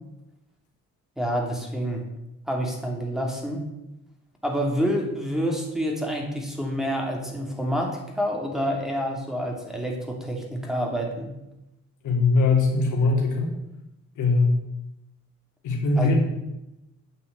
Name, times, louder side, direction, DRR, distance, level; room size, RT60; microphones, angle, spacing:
voice 1, 1.2-2.0 2.5-3.6 4.4-11.3 16.0-16.1, equal, ahead, -1 dB, 3.0 m, -28 dB
voice 2, 12.0-13.5 14.2-14.6 15.6-16.1, left 3 dB, 75° left, 0 dB, 3.0 m, -21 dB
9.6 x 5.7 x 8.3 m, 0.93 s
cardioid pair, 90°, 30 cm